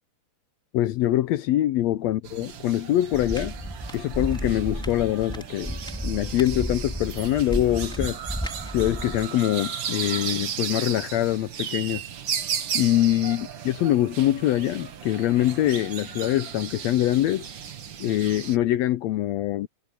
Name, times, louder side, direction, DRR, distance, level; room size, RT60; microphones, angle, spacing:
voice 1, 0.7-3.5 3.9-8.2 8.7-12.0 12.7-17.5 18.0-19.7, left 14 dB, 80° left, 1.6 m, -24 dB
sound 1, 2.2-18.6, right 8 dB, 50° right, 1.5 m, -35 dB
sound 2, 3.1-9.3, equal, ahead, 4.7 m, -33 dB
omnidirectional pair, 3.7 m